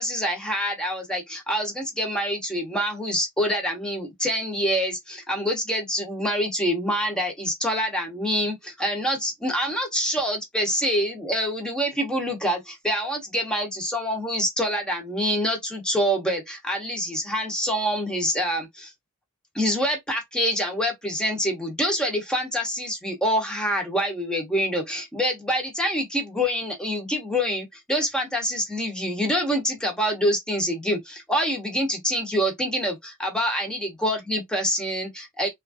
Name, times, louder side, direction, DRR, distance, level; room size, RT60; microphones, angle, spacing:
voice 1, 0.0-18.9 19.5-35.5, equal, 5° left, 0.9 m, -26 dB
3.1 x 2.4 x 2.5 m
head